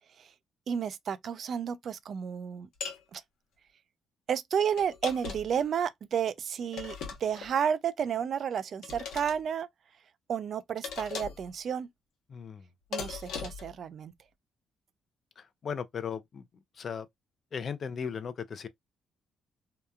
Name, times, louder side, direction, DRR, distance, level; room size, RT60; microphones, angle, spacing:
voice 1, 0.7-2.7 3.1-3.2 4.3-7.0 7.2-9.7 10.3-11.9 12.9-14.1, right 8 dB, 60° right, 0.3 m, -31 dB
sound 1, 2.8-3.0 4.8-5.6 6.7-7.5 8.8-9.4 10.8-11.5 12.9-13.7, left 6 dB, 80° left, 0.9 m, -38 dB
voice 2, 12.3-12.6 15.4-16.4 16.8-17.1 17.5-18.7, left 6 dB, 50° left, 0.4 m, -37 dB
2.8 x 2.3 x 2.2 m
cardioid pair, 90°, 0 cm